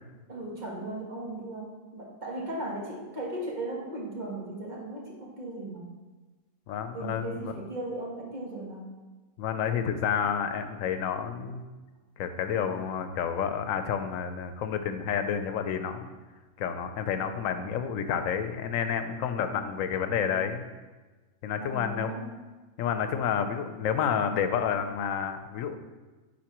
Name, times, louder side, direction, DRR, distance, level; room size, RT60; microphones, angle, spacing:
voice 1, 0.3-5.9 6.9-8.8 21.6-22.3, right 1 dB, 35° right, -3 dB, 1.3 m, -37 dB
voice 2, 6.7-7.5 9.4-11.6 12.2-16.1 16.6-20.6 21.4-22.1 22.8-25.8, left 7 dB, 90° left, 8 dB, 1.0 m, -30 dB
9.3 x 4.4 x 3.0 m, 1.3 s
omnidirectional pair, 1.3 m